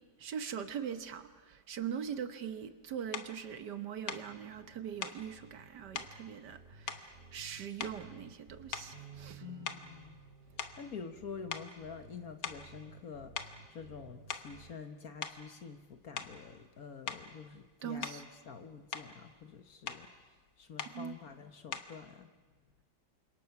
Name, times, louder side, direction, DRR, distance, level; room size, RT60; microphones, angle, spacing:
voice 1, 0.2-9.4 17.8-18.2 20.9-21.1, right 8 dB, 70° right, 9 dB, 1.7 m, -41 dB
sound 1, 3.1-3.3 4.1-4.3 5.0-5.2 5.9-6.2 6.9-7.5 7.8-8.2 8.7-9.1 9.6-11.2 11.5-11.7 12.4-12.7 13.4-13.6 14.1-14.6 15.2-15.4 16.2-16.4 17.1-17.3 18.0-18.3 18.7-19.1 19.9-20.1 20.8-21.0 21.7-22.0, left 7 dB, 70° left, 1.8 m, -42 dB
sound 2, 4.1-14.7, right 3 dB, 35° right, 1.4 m, -58 dB
Bass guitar, 8.9-13.3 14.0-15.2, right 9 dB, 90° left, 4.8 m, -58 dB
voice 2, 9.4-10.2 10.8-20.1 20.6-22.3, left 6 dB, 55° left, 7 dB, 1.6 m, -47 dB
29.0 x 26.0 x 5.9 m, 1.3 s
omnidirectional pair, 1.9 m